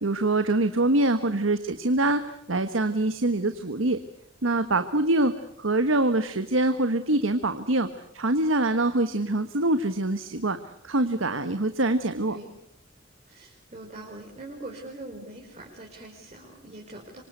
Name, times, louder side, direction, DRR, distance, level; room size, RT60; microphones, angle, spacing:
voice 1, 0.0-4.0 4.4-5.3 5.6-7.9 8.1-10.6 10.8-12.4, right 2 dB, 80° right, 9 dB, 1.4 m, -24 dB
voice 2, 13.3-17.2, right 2 dB, 35° right, -1 dB, 4.7 m, -42 dB
26.5 x 25.0 x 8.2 m, 0.71 s
head